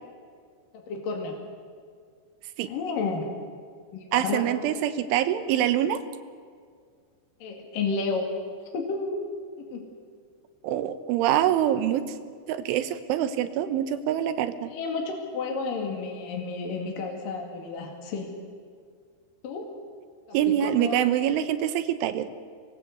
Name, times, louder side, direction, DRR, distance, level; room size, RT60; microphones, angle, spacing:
voice 1, 0.7-1.3 2.7-3.3 3.9-4.4 7.4-8.3 8.7-9.3 9.6-9.8 14.7-18.3 19.4-19.7 20.3-21.0, left 4 dB, 55° left, 2 dB, 3.5 m, -31 dB
voice 2, 4.1-6.0 10.6-12.0 12.5-14.7 20.3-22.3, right 11 dB, 85° right, 10 dB, 3.5 m, -25 dB
25.0 x 20.5 x 8.1 m, 2.1 s
omnidirectional pair, 5.5 m